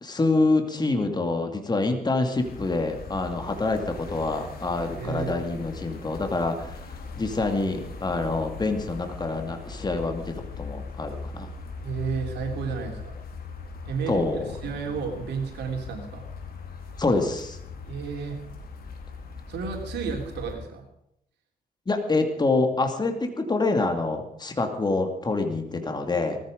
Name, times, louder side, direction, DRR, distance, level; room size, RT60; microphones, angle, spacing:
voice 1, 0.0-6.9 7.2-11.5 14.1-14.5 17.0-17.6 21.9-26.4, left 3 dB, 25° left, 5 dB, 2.4 m, -26 dB
sound 1, 2.3-20.6, left 5 dB, 60° left, 3.3 m, -40 dB
voice 2, 4.9-5.4 11.8-13.1 13.9-16.2 17.9-18.4 19.5-20.8, right 5 dB, 90° right, 2 dB, 3.5 m, -32 dB
19.0 x 14.5 x 5.2 m, 0.77 s
cardioid pair, 100°, 17 cm